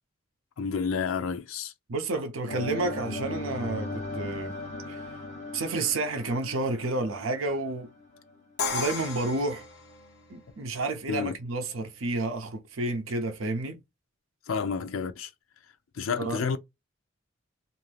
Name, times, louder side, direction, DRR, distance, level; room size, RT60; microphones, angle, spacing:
voice 1, 0.6-1.7 11.1-11.4 14.5-15.3 15.9-16.6, left 5 dB, 90° left, 0.5 m, -30 dB
voice 2, 1.9-4.6 4.9-5.0 5.5-7.9 8.7-9.7 10.3-13.8 16.2-16.4, right 2 dB, 90° right, 0.7 m, -30 dB
sound 1, 2.5-8.4, left 2 dB, 35° left, 1.0 m, -37 dB
Crash cymbal, 8.6-10.5, left 4 dB, 60° left, 0.7 m, -34 dB
2.6 x 2.6 x 3.2 m
head